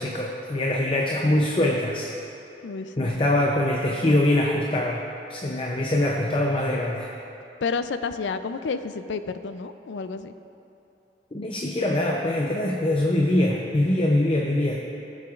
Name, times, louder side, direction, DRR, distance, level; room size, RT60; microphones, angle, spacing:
voice 1, 0.0-2.1 3.0-5.0 5.3-7.1 11.3-14.8, left 1 dB, 30° left, 0 dB, 0.5 m, -23 dB
voice 2, 2.6-2.9 7.6-10.3, left 4 dB, 85° left, 11 dB, 0.4 m, -30 dB
17.5 x 7.5 x 2.4 m, 2.8 s
head